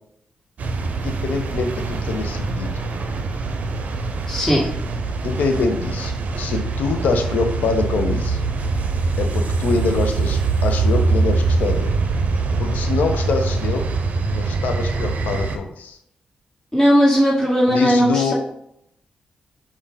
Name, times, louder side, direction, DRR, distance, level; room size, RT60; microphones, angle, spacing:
sound 1, 0.6-15.6, right 3 dB, 60° right, 0.5 m, -23 dB
voice 1, 1.0-2.7 5.2-8.4 9.2-11.9 12.6-13.9 14.3-16.0 17.7-18.3, left 4 dB, 85° left, 5 dB, 0.5 m, -24 dB
voice 2, 4.3-4.7 16.7-18.3, equal, 20° left, -5 dB, 1.7 m, -17 dB
5.4 x 2.4 x 3.7 m, 0.76 s
cardioid pair, 60°, 3 cm